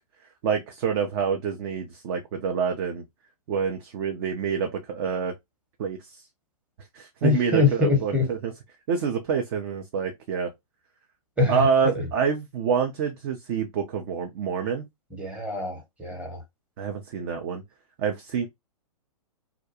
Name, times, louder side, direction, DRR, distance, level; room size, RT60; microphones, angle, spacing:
voice 1, 0.4-3.0 3.5-5.4 5.8-6.2 6.9-8.5 8.9-10.5 11.5-14.8 16.8-17.6 18.0-18.5, right 6 dB, 40° right, 0.5 m, -27 dB
voice 2, 7.2-8.3 11.4-12.0 15.2-16.4, left 3 dB, 5° right, 0.9 m, -24 dB
2.4 x 2.1 x 2.7 m
hypercardioid pair, 120°, 19 cm